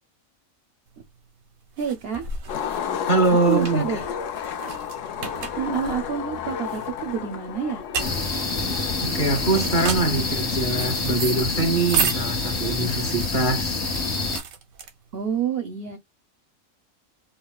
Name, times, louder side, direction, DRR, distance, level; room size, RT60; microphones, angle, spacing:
sound 1, 1.0-15.3, right 6 dB, 90° right, 1.2 m, -33 dB
voice 1, 1.8-2.3 3.5-4.1 5.6-7.8 15.1-16.0, right 7 dB, 60° right, 0.7 m, -28 dB
Skateboard, 2.5-12.6, left 8 dB, 70° left, 0.9 m, -33 dB
voice 2, 3.1-4.0 9.0-13.8, right 3 dB, 35° left, 1.1 m, -23 dB
sound 2, 8.0-14.4, left 3 dB, 55° left, 1.3 m, -27 dB
4.6 x 2.1 x 2.2 m
omnidirectional pair, 1.4 m